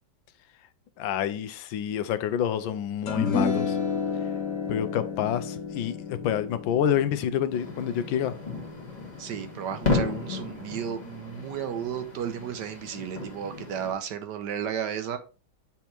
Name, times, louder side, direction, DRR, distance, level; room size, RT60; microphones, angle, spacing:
voice 1, 1.0-3.8 4.7-8.3, left 9 dB, 85° left, 1.4 m, -28 dB
sound 1, 3.1-9.6, left 5 dB, 65° left, 1.8 m, -31 dB
sound 2, 7.5-13.9, left 3 dB, 25° left, 1.4 m, -33 dB
voice 2, 9.2-15.2, right 8 dB, 70° right, 1.2 m, -33 dB
7.2 x 3.5 x 4.4 m
omnidirectional pair, 2.1 m